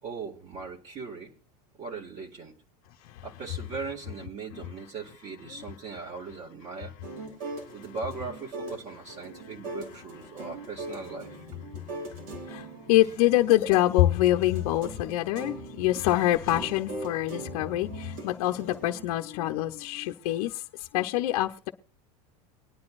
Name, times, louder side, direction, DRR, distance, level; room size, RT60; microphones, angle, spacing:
voice 1, 0.0-1.3 1.7-2.6 3.2-7.0 7.7-11.4 12.4-12.6, right 4 dB, 40° right, 2.1 m, -39 dB
sound 1, 7.0-19.1, right 2 dB, 70° right, 4.9 m, -41 dB
voice 2, 7.4-7.8 9.3-9.4 10.3-10.5 11.2-21.7, left 15 dB, 70° left, 0.8 m, -26 dB
24.0 x 9.6 x 2.5 m
supercardioid pair, 105°, 19 cm